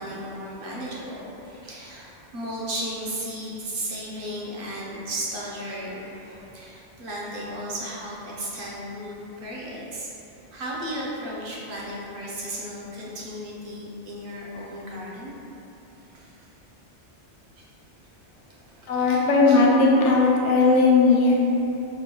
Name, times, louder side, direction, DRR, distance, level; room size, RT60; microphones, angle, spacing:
voice 1, 0.0-10.1 10.5-15.3 16.0-16.5 17.6-17.7 18.3-19.6, right 1 dB, 55° right, -5 dB, 0.8 m, -35 dB
voice 2, 18.9-21.4, left 3 dB, 80° left, -2 dB, 0.9 m, -18 dB
4.5 x 2.2 x 2.9 m, 2.9 s
omnidirectional pair, 1.2 m